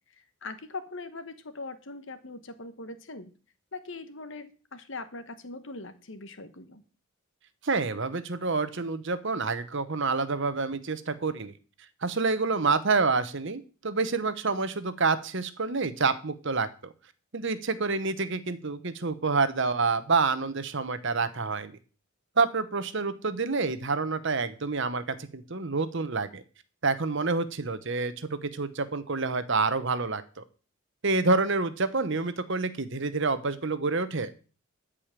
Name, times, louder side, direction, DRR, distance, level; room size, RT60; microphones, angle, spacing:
voice 1, 0.2-3.3 3.7-6.8, left 3 dB, 55° left, 11 dB, 1.2 m, -41 dB
voice 2, 7.6-11.5 12.0-16.9 17.3-21.8 22.4-26.4 26.8-30.4 31.0-34.3, right 4 dB, 55° right, 13 dB, 1.0 m, -28 dB
13.5 x 5.0 x 7.5 m, 0.37 s
head